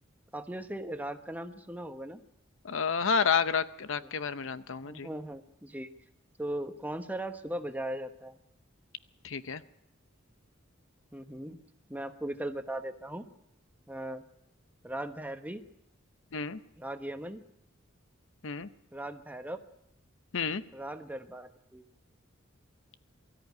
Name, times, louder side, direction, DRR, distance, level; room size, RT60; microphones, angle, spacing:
voice 1, 0.3-2.2 4.8-5.9 6.4-8.4 11.1-11.6 11.9-13.3 13.9-14.2 14.8-15.6 16.8-17.4 18.9-19.6 20.7-21.8, right 1 dB, 10° right, 7 dB, 1.1 m, -38 dB
voice 2, 2.6-5.1 9.2-9.6 16.3-16.6 18.4-18.7 20.3-20.6, left 6 dB, 70° left, 13 dB, 0.8 m, -30 dB
22.5 x 13.5 x 9.5 m, 0.81 s
head